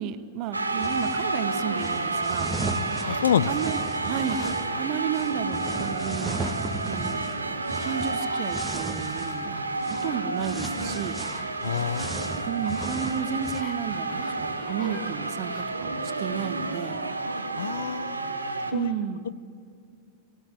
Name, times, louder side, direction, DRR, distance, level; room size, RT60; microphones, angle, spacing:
voice 1, 0.0-2.5 3.5-6.5 6.9-7.3 7.8-9.6 9.9-11.5 12.5-17.0 18.7-19.2, right 9 dB, 40° right, 12 dB, 1.2 m, -32 dB
sound 1, 0.5-18.7, right 3 dB, 80° right, 1.3 m, -30 dB
sound 2, 0.8-1.3 1.8-4.7 5.1-9.4 9.8-10.1 10.4-13.6, right 2 dB, 10° right, 1.6 m, -36 dB
sound 3, 2.9-5.2 5.9-6.0 6.3-7.4 7.8-9.0 9.5-15.8 16.2-16.3, left 5 dB, 30° left, 2.2 m, -48 dB
voice 2, 3.1-3.5 11.6-12.2 17.6-18.2 18.7-18.9 19.2-19.3, left 9 dB, 65° left, 19 dB, 0.5 m, -27 dB
19.0 x 17.5 x 8.4 m, 2.3 s
figure-of-eight pair, 90°, 0 cm